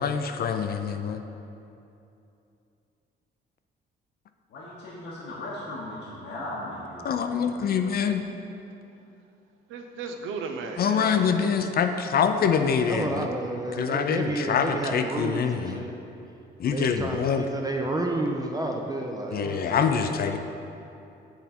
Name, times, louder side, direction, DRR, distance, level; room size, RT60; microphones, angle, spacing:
voice 1, 0.0-1.2 7.0-8.2 10.8-13.3 13.8-15.8 16.6-17.4 19.3-20.4, left 7 dB, 50° left, 7 dB, 0.4 m, -25 dB
voice 2, 4.5-7.3, left 1 dB, 85° left, -7 dB, 1.0 m, -37 dB
voice 3, 9.7-11.6, right 4 dB, 85° right, 4 dB, 0.6 m, -35 dB
voice 4, 12.9-16.0 16.7-19.9, right 2 dB, 20° right, 1 dB, 0.5 m, -31 dB
7.2 x 3.8 x 4.3 m, 2.8 s
cardioid pair, 90°, 20 cm